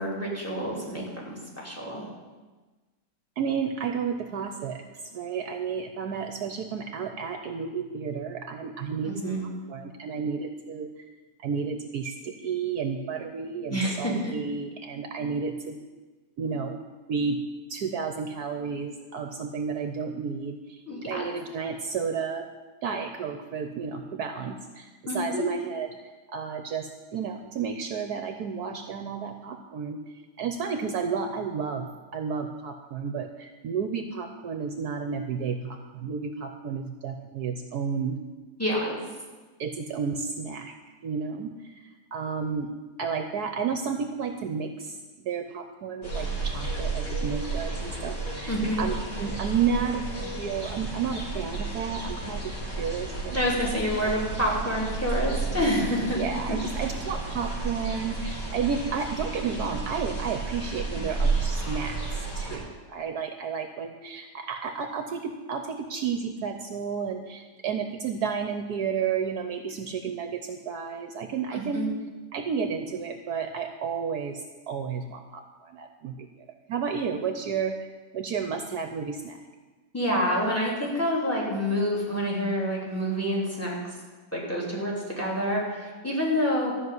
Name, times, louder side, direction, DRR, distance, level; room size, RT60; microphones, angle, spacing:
voice 1, 0.0-2.0 9.0-9.4 13.7-14.3 20.9-21.3 25.1-25.5 38.6-39.0 48.5-48.8 53.3-56.2 56.5-56.6 71.5-71.9 79.9-83.8 84.3-86.7, equal, 10° left, -2 dB, 3.3 m, -28 dB
voice 2, 3.4-4.8 5.1-10.9 11.4-15.8 16.4-16.8 17.1-17.4 17.7-22.5 22.8-25.9 26.3-30.0 30.4-31.9 32.1-38.2 39.6-40.7 41.0-42.7 43.0-53.4 56.2-62.0 62.4-71.9 72.3-74.4 74.7-76.3 76.7-77.9 78.1-79.4, right 6 dB, 65° right, 6 dB, 1.3 m, -32 dB
sound 1, 46.0-62.6, right 3 dB, 75° left, 4.0 m, -32 dB
13.5 x 6.1 x 9.4 m, 1.3 s
omnidirectional pair, 1.9 m